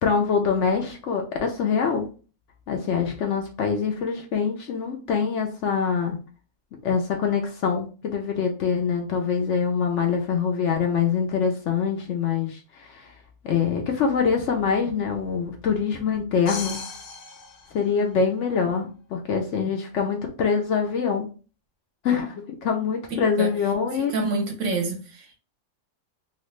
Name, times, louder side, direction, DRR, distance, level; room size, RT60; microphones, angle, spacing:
voice 1, 0.0-2.1 2.7-6.2 6.8-13.1 13.4-16.8 17.7-21.3 22.0-24.1, left 6 dB, 65° left, 0.8 m, -24 dB
sound 1, 16.5-18.4, left 4 dB, 85° left, 1.5 m, -37 dB
voice 2, 23.9-25.4, right 3 dB, 65° right, 0.9 m, -28 dB
2.9 x 2.3 x 3.1 m
omnidirectional pair, 1.6 m